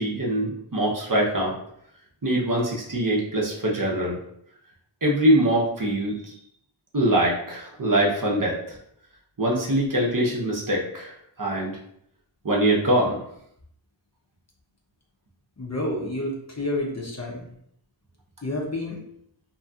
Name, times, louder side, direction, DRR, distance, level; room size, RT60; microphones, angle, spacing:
voice 1, 0.0-1.5 2.2-4.2 5.0-6.3 6.9-8.8 9.4-11.7 12.4-13.2, right 1 dB, 45° right, -3 dB, 0.7 m, -23 dB
voice 2, 15.6-17.4 18.4-19.0, left 1 dB, 35° left, -1 dB, 0.6 m, -29 dB
2.8 x 2.6 x 2.3 m, 0.71 s
wide cardioid pair, 45°, 47 cm